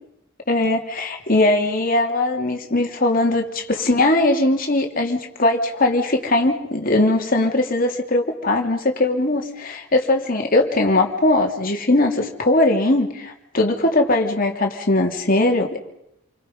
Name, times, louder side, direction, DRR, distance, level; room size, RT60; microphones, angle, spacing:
voice 1, 0.5-15.8, left 2 dB, 45° left, 3 dB, 3.1 m, -20 dB
29.0 x 24.0 x 5.5 m, 0.80 s
head